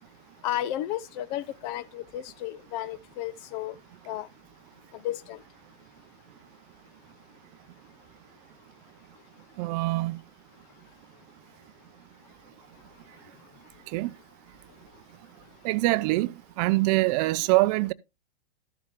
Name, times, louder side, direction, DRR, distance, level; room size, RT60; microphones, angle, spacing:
voice 1, 0.4-3.7 4.1-4.3 5.0-5.4, left 13 dB, 45° left, 1.1 m, -33 dB
voice 2, 9.6-10.2 13.9-14.1 15.6-17.9, right 21 dB, 40° right, 0.7 m, -24 dB
13.5 x 7.3 x 3.7 m
hypercardioid pair, 115°, 30 cm